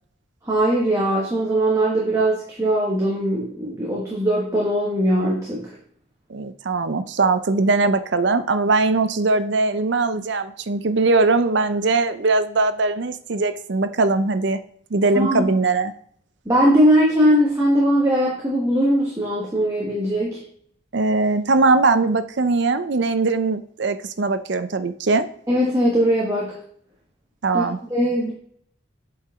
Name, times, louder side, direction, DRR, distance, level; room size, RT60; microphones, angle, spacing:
voice 1, 0.5-5.7 15.1-15.5 16.4-20.4 25.5-26.5 27.5-27.6 27.9-28.3, equal, 15° right, -4 dB, 1.3 m, -20 dB
voice 2, 6.3-14.6 14.9-15.9 20.9-25.3 27.4-27.8, right 3 dB, 60° right, 10 dB, 0.5 m, -20 dB
8.0 x 4.7 x 3.6 m, 0.62 s
head